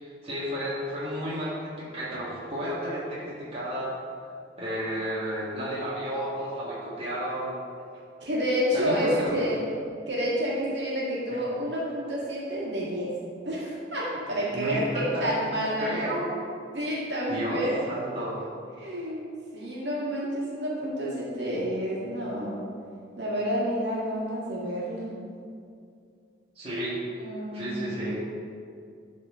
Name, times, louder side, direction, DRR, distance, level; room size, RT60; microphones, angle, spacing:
voice 1, 0.0-4.0 4.6-7.5 8.7-9.5 11.3-11.4 14.5-15.4 15.8-16.3 17.3-18.4 26.5-27.0 27.5-28.2, equal, 30° right, -9 dB, 1.6 m, -32 dB
voice 2, 8.2-9.6 10.1-13.1 13.4-15.9 16.7-17.8 18.8-19.2 19.5-22.6 23.2-25.1 27.2-28.0, equal, 70° right, -6 dB, 1.9 m, -29 dB
11.0 x 4.3 x 3.7 m, 2.4 s
head